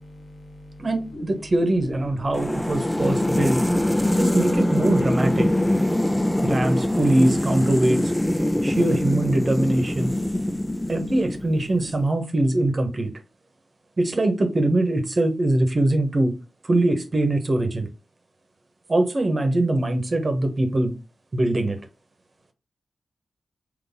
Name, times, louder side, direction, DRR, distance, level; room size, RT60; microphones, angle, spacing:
voice 1, 0.0-0.9 1.1-1.2 5.4-7.0 8.4-8.8 9.9-10.9, left 1 dB, 70° left, 1.1 m, -43 dB
voice 2, 0.8-3.6 4.1-5.5 6.4-8.1 8.6-10.1 10.9-13.1 14.0-16.3 16.6-17.9 18.9-20.9 21.3-21.8, right 1 dB, 45° right, 1.1 m, -22 dB
sound 1, 2.3-11.7, left 1 dB, 10° left, 0.3 m, -23 dB
4.0 x 3.2 x 3.7 m
cardioid pair, 65°, 0 cm